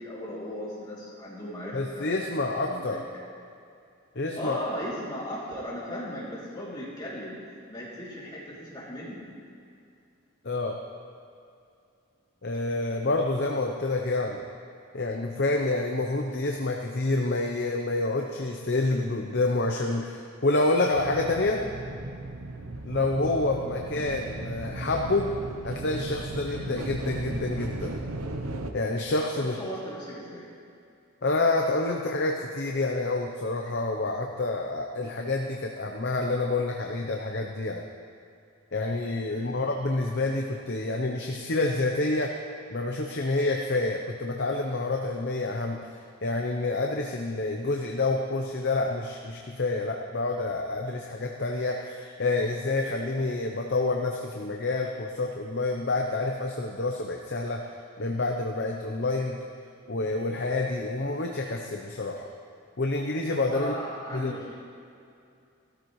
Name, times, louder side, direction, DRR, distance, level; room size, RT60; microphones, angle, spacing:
voice 1, 0.0-2.1 2.7-3.0 4.4-7.4 7.7-9.3 29.3-30.5 39.3-39.6 63.5-64.5, equal, 20° left, -7 dB, 2.8 m, -37 dB
voice 2, 1.7-3.0 4.2-4.6 10.4-10.8 12.4-14.4 14.9-21.6 22.8-25.3 25.6-27.9 28.7-29.6 31.2-37.9 38.7-42.3 42.7-45.8 46.2-57.6 58.0-59.4 59.9-62.2 62.8-63.7 64.1-64.3, left 2 dB, 50° left, 1 dB, 0.7 m, -28 dB
sound 1, 20.9-28.7, right 2 dB, 75° right, 0.8 m, -36 dB
16.0 x 13.5 x 3.2 m, 2.5 s
head